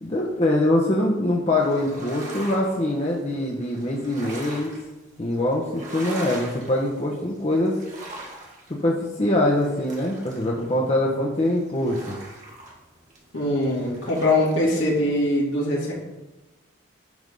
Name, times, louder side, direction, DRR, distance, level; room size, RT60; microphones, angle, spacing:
voice 1, 0.0-4.7 5.2-7.8 8.7-12.2, left 1 dB, 35° left, -3 dB, 0.9 m, -23 dB
sound 1, 1.6-15.2, right 1 dB, 40° right, 1.6 m, -42 dB
voice 2, 13.3-15.9, left 1 dB, 75° left, -4 dB, 2.4 m, -22 dB
9.4 x 3.6 x 5.3 m, 1.0 s
head